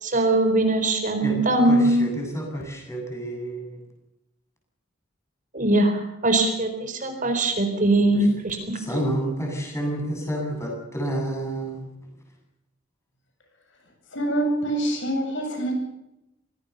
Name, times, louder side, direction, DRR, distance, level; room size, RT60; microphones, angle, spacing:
voice 1, 0.0-2.1 5.5-8.7, right 2 dB, 40° right, 6 dB, 4.5 m, -21 dB
voice 2, 1.6-3.8 8.1-8.3 8.8-11.8, right 1 dB, 15° left, 1 dB, 7.9 m, -29 dB
voice 3, 14.1-15.7, right 1 dB, 65° left, 3 dB, 7.8 m, -25 dB
25.0 x 18.0 x 7.0 m, 0.88 s
head